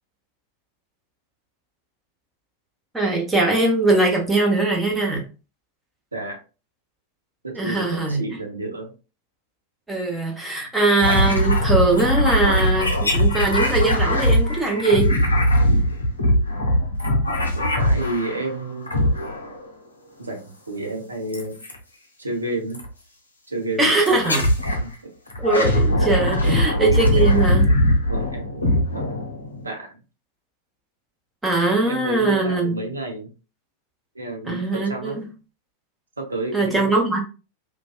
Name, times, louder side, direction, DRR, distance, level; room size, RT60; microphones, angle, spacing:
voice 1, 2.9-5.3 7.5-8.2 9.9-15.1 23.8-24.5 25.4-27.7 31.4-32.8 34.5-35.3 36.5-37.2, right 2 dB, 10° right, -1 dB, 0.9 m, -21 dB
voice 2, 7.4-8.9 17.5-18.9 20.2-21.6 22.2-22.8 23.5-24.2 24.7-25.1 26.4-26.6 27.1-27.7 28.1-29.1 29.6-30.0 31.7-33.3 34.1-35.2 36.2-36.9, right 2 dB, 80° right, 2 dB, 0.7 m, -31 dB
sound 1, 11.0-18.5 18.9-19.6 21.3-21.8 22.7-22.9 24.1-24.9 25.3-29.7, equal, 80° left, 0.5 m, -20 dB
2.6 x 2.3 x 2.3 m, 0.33 s
figure-of-eight pair, 90°, 0 cm